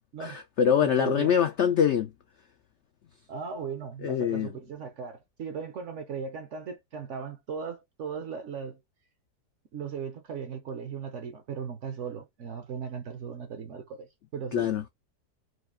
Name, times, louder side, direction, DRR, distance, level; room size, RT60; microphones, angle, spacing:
voice 1, 0.2-2.1 4.0-4.5 14.5-14.8, left 8 dB, 80° left, 0.6 m, -24 dB
voice 2, 0.8-1.3 3.3-8.8 9.7-14.9, right 6 dB, 60° right, 0.8 m, -37 dB
4.8 x 2.4 x 3.6 m
omnidirectional pair, 1.8 m